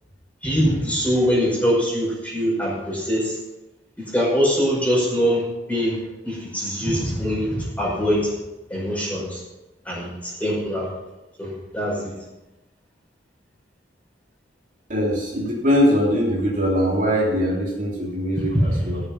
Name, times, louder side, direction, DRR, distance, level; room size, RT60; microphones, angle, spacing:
voice 1, 0.4-3.4 4.1-5.4 5.7-6.0 6.2-8.2 8.7-9.4 9.9-10.9 11.4-12.1 18.5-18.9, equal, 10° left, -5 dB, 5.2 m, -22 dB
voice 2, 14.9-19.0, equal, 45° right, -4 dB, 3.1 m, -21 dB
14.5 x 7.3 x 5.8 m, 1.0 s
head